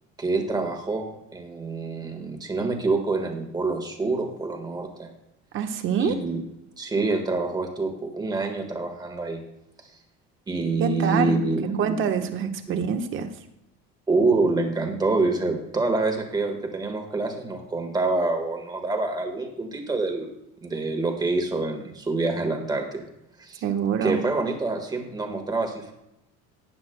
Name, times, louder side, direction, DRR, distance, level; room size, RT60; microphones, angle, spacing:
voice 1, 0.2-1.1 1.3-5.1 6.0-6.4 6.8-9.4 10.5-12.0 12.7-12.8 14.1-20.3 20.6-23.0 23.4-23.6 24.0-25.9, right 3 dB, 15° right, 3 dB, 1.5 m, -26 dB
voice 2, 5.5-6.2 10.8-11.4 11.8-13.3 23.6-24.2, right 7 dB, 40° right, 6 dB, 1.1 m, -25 dB
18.5 x 9.4 x 2.2 m, 0.84 s
cardioid pair, 165°, 30 cm